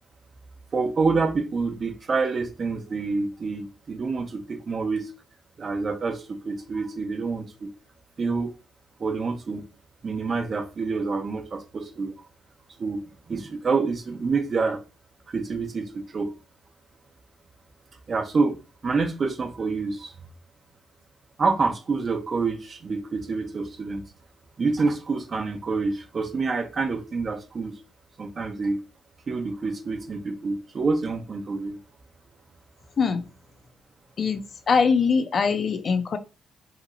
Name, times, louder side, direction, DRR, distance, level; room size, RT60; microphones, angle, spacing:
voice 1, 0.7-5.1 5.6-7.7 8.2-8.5 9.0-9.6 10.0-12.1 12.8-13.0 13.3-14.8 15.3-16.3 18.1-18.6 18.8-20.1 21.4-24.0 24.6-27.8 28.2-28.8 29.3-31.8, right 4 dB, 40° right, 5 dB, 0.6 m, -27 dB
voice 2, 34.2-36.2, left 5 dB, 50° left, 9 dB, 0.4 m, -22 dB
2.9 x 2.8 x 2.5 m, 0.31 s
cardioid pair, 90°, 0 cm